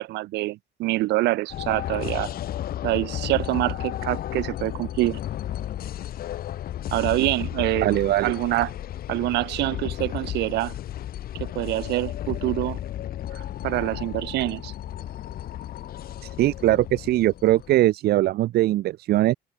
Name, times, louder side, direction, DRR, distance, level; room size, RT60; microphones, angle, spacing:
voice 1, 0.0-2.3 2.8-5.2 6.9-7.9 8.2-8.7 9.1-10.8 11.4-12.8 13.4-14.7, right 18 dB, 85° right, 6.5 m, -26 dB
sound 1, 1.5-17.7, left 12 dB, 60° left, 3.5 m, -33 dB
voice 2, 7.8-8.3 16.2-19.3, right 15 dB, 70° right, 1.1 m, -21 dB
open air
cardioid pair, 110°, 17 cm